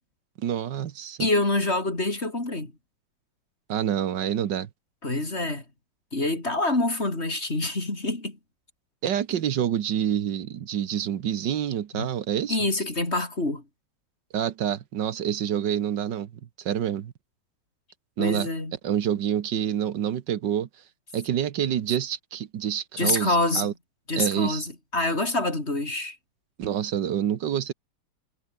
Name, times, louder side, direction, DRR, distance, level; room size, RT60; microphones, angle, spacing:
voice 1, 0.4-1.3 3.7-4.7 9.0-12.6 14.3-16.3 16.6-17.1 18.2-18.5 18.8-20.7 21.1-23.7 24.2-24.6 26.6-27.7, right 9 dB, 75° right, 1.8 m, -27 dB
voice 2, 1.2-2.7 5.0-5.6 6.1-8.4 12.0-12.1 12.5-13.6 18.2-18.7 23.0-23.7 24.1-26.2, left 2 dB, 35° left, 4.6 m, -26 dB
omnidirectional pair, 2.0 m